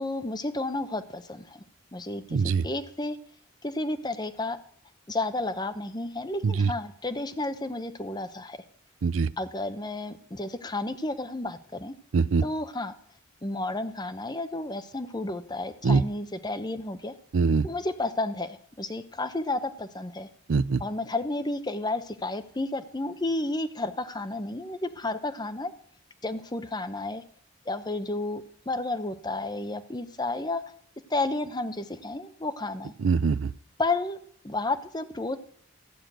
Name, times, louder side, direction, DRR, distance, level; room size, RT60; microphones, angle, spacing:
voice 1, 0.0-1.6 1.9-3.2 3.6-4.6 5.1-8.6 9.4-11.9 12.4-12.9 13.4-17.1 17.6-20.3 20.8-25.7 26.2-27.2 27.7-30.6 31.1-32.9 33.8-34.2 34.4-35.4, left 2 dB, 20° left, 9 dB, 0.8 m, -31 dB
voice 2, 2.3-2.6 6.4-6.7 9.0-9.3 12.1-12.4 15.8-16.0 17.3-17.7 20.5-20.8 33.0-33.5, right 5 dB, 65° right, 17 dB, 0.4 m, -23 dB
14.0 x 6.4 x 9.0 m, 0.63 s
head